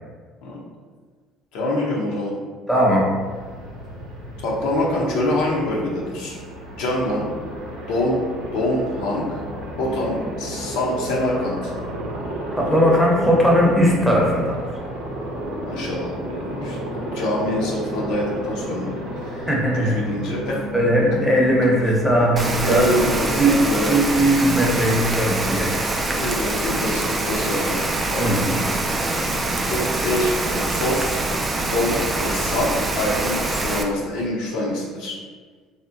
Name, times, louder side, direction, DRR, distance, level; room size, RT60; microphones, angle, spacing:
voice 1, 1.5-2.3 4.4-6.4 6.8-7.3 7.9-8.2 8.5-9.2 9.8-11.7 15.7-16.8 17.1-18.9 19.4-19.5 19.8-20.6 22.6-24.0 24.6-24.7 26.1-27.8 28.1-28.4 28.8-28.9 29.7-31.2 31.7-35.2, left 1 dB, 75° left, -3 dB, 0.6 m, -25 dB
voice 2, 2.7-3.1 12.5-14.6 19.3-20.1 20.7-22.9 23.2-25.7 28.2-28.6, equal, ahead, -3 dB, 0.7 m, -19 dB
Aircraft, 3.0-22.9, equal, 85° right, 0.6 m, -32 dB
Rain, 22.4-33.8, right 2 dB, 25° right, 0.3 m, -24 dB
2.7 x 2.0 x 2.6 m, 1.5 s
supercardioid pair, 85°, 0 cm